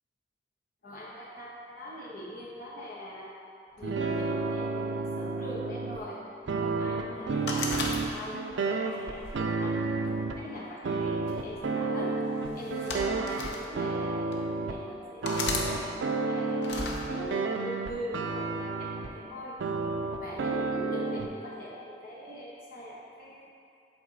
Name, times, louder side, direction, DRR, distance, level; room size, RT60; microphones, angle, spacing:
voice 1, 0.8-3.3 3.8-6.2 6.6-9.8 10.3-12.2 12.5-19.6 20.2-23.5, equal, 50° left, -5 dB, 1.2 m, -42 dB
sound 1, 3.8-6.0 6.5-10.4 10.8-14.8 15.2-19.1 19.6-21.3, right 3 dB, 90° right, 0.4 m, -31 dB
sound 2, 7.5-8.5 9.1-10.3 11.3-11.5 12.6-13.6 14.3-14.4 15.2-15.7 16.6-17.0, left 3 dB, 70° left, 0.7 m, -34 dB
8.0 x 3.6 x 4.0 m, 2.5 s
head